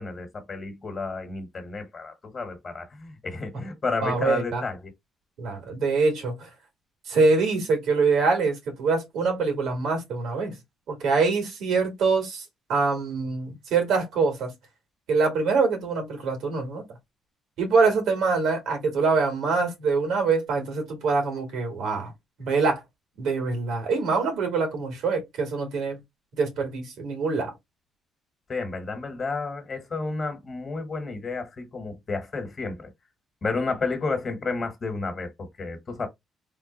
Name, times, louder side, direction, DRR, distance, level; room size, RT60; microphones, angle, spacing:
voice 1, 0.0-4.9 28.5-32.9 33.4-36.1, left 3 dB, 40° left, 1.2 m, -31 dB
voice 2, 4.0-4.6 5.4-6.5 7.1-10.6 10.9-12.4 12.7-14.5 15.1-16.8 17.6-22.1 22.4-22.8 23.2-26.0 26.4-27.5, right 4 dB, 85° right, 2.0 m, -24 dB
3.6 x 2.2 x 3.8 m
cardioid pair, 90°, 0 cm